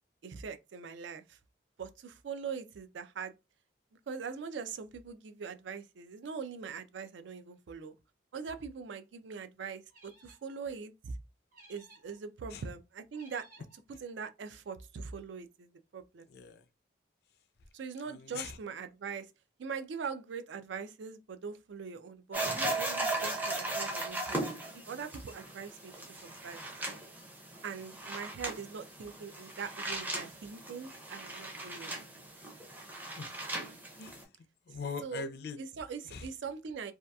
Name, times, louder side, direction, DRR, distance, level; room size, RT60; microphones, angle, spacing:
voice 1, 0.2-1.4 1.8-3.3 4.1-7.9 8.3-11.1 11.7-13.5 14.0-16.3 17.7-19.3 19.6-26.7 27.6-31.9 35.0-35.3 35.6-36.9, right 6 dB, 70° right, 0.4 m, -42 dB
sound 1, 9.9-10.6 11.5-12.2 13.1-13.8, right 2 dB, 45° right, 0.9 m, -58 dB
voice 2, 16.3-16.6 18.0-18.6 33.2-33.3 34.0-34.3 34.7-35.6 36.0-36.3, left 5 dB, 55° left, 0.4 m, -41 dB
sound 2, 22.3-34.2, right 2 dB, 10° right, 0.5 m, -38 dB
2.7 x 2.3 x 2.2 m
head